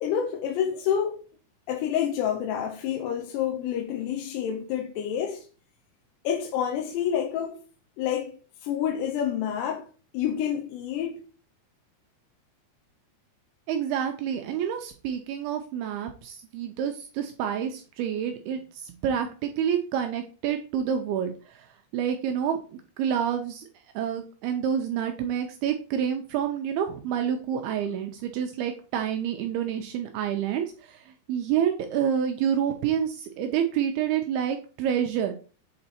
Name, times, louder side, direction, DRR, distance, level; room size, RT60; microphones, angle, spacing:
voice 1, 0.0-1.2 1.7-5.5 6.2-7.6 8.0-9.9 10.1-11.2, left 9 dB, 80° left, 2.9 m, -28 dB
voice 2, 13.7-21.7 21.9-22.6 23.0-23.7 24.0-35.3, right 8 dB, 80° right, 2.4 m, -28 dB
7.8 x 3.8 x 4.3 m
omnidirectional pair, 4.9 m